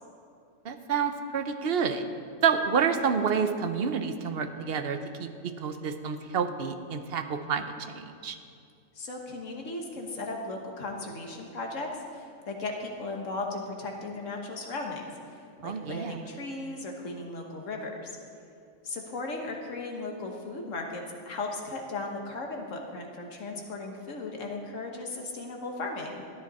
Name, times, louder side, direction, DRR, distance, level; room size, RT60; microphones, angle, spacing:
voice 1, 0.6-2.0 2.4-8.4 15.6-16.2, right 6 dB, 55° right, 8 dB, 0.9 m, -29 dB
voice 2, 9.0-18.1 18.8-26.2, left 2 dB, 75° left, 1 dB, 1.7 m, -36 dB
14.5 x 10.0 x 4.2 m, 2.3 s
omnidirectional pair, 1.3 m